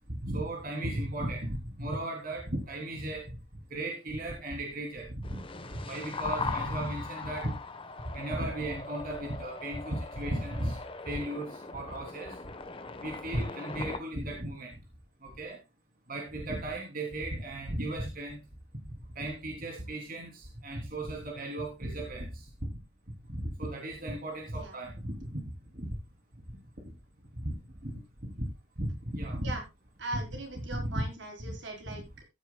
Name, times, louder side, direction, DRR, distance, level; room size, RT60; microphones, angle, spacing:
voice 1, 0.1-3.3 3.7-5.4 5.9-7.5 8.1-10.8 11.0-12.4 13.0-14.7 15.2-15.6 16.1-18.4 19.1-22.4 23.3-25.4 27.4-27.5 27.8-27.9 28.8-29.5 30.1-30.4 30.7-31.1 31.4-31.5 31.9-32.0, right 1 dB, 50° right, 0 dB, 3.2 m, -35 dB
sound 1, 5.2-14.0, left 4 dB, 30° left, 1.2 m, -40 dB
voice 2, 30.0-32.2, right 2 dB, 70° right, 2 dB, 4.4 m, -40 dB
14.5 x 10.0 x 2.3 m, 0.23 s
head